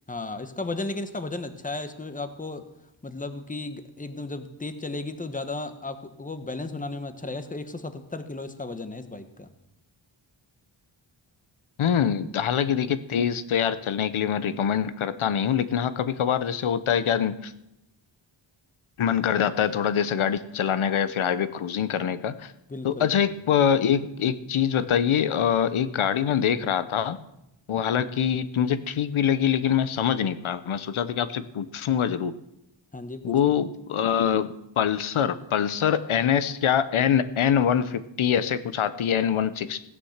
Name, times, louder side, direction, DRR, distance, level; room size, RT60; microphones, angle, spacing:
voice 1, 0.1-2.6 3.0-9.5 22.7-23.1 27.7-27.8 32.9-33.5, left 2 dB, 15° left, 9 dB, 1.2 m, -34 dB
voice 2, 11.8-17.5 19.0-22.5 22.8-27.2 27.7-32.3 33.2-39.9, left 8 dB, 85° left, 13 dB, 0.9 m, -24 dB
16.0 x 9.7 x 7.3 m, 0.84 s
wide cardioid pair, 130°, 48 cm